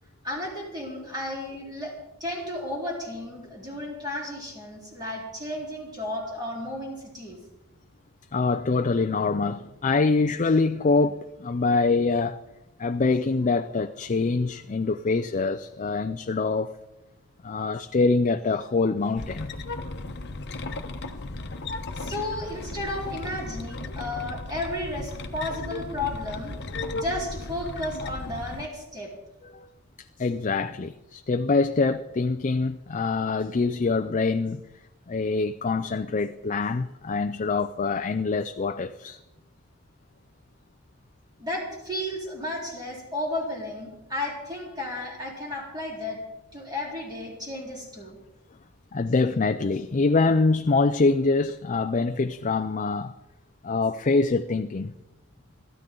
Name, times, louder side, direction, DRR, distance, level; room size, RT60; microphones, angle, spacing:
voice 1, 0.2-1.9 2.2-7.4 21.9-26.5 26.9-29.1 41.4-46.2 46.5-48.2, left 1 dB, 20° right, 4.0 m, -33 dB
voice 2, 8.3-12.4 12.8-16.8 17.4-19.5 29.4-29.7 30.2-34.6 35.1-39.2 48.9-53.1 53.6-54.9, left 3 dB, 35° left, 0.5 m, -24 dB
sound 1, 19.2-28.7, left 2 dB, 50° left, 1.1 m, -35 dB
25.5 x 13.5 x 3.8 m
head